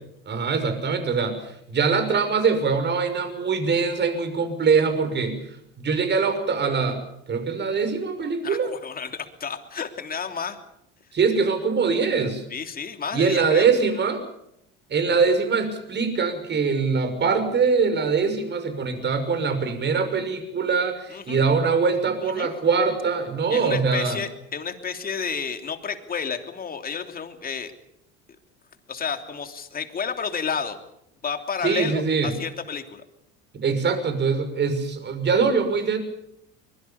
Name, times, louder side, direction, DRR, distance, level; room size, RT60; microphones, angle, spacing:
voice 1, 0.3-5.4 5.8-7.0 7.3-8.7 11.1-12.4 13.1-14.2 14.9-24.2 31.6-32.3 33.5-36.0, right 5 dB, 35° right, 9 dB, 6.0 m, -23 dB
voice 2, 8.4-10.6 12.5-13.7 21.1-21.4 22.2-22.6 23.5-27.7 28.9-30.8 31.2-33.0, left 6 dB, 30° left, 7 dB, 3.2 m, -31 dB
24.5 x 22.0 x 7.1 m, 0.77 s
supercardioid pair, 105°, 29 cm